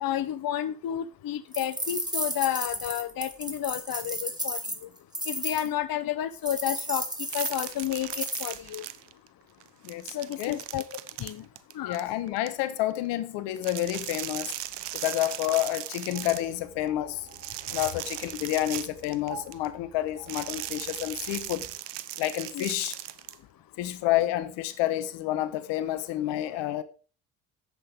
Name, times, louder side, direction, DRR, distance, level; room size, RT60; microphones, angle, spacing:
voice 1, 0.0-4.6 5.3-7.1 7.3-8.8 10.1-10.8 11.2-11.4 11.7-12.0 22.5-22.7, left 11 dB, 50° left, 1.0 m, -31 dB
sound 1, 1.5-5.7 6.5-8.6, right 1 dB, 10° right, 3.1 m, -33 dB
sound 2, 7.3-9.3 9.6-12.5 13.6-16.5 17.3-19.7 20.3-23.4, right 14 dB, 70° right, 1.0 m, -38 dB
voice 2, 9.8-10.6 11.8-14.5 14.9-17.3 17.7-21.7 22.2-22.9 23.8-26.8, left 14 dB, 75° left, 1.3 m, -29 dB
sound 3, 16.1-21.7, right 5 dB, 90° right, 4.9 m, -49 dB
11.5 x 8.0 x 5.2 m
hypercardioid pair, 55°, 43 cm